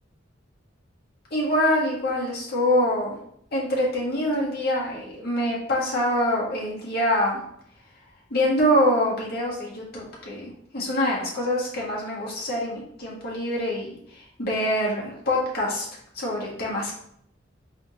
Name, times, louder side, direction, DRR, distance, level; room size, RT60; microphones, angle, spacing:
voice 1, 1.3-3.1 3.5-7.4 8.3-15.9 16.1-16.9, equal, 55° left, -5 dB, 1.5 m, -25 dB
4.2 x 3.6 x 3.0 m, 0.69 s
head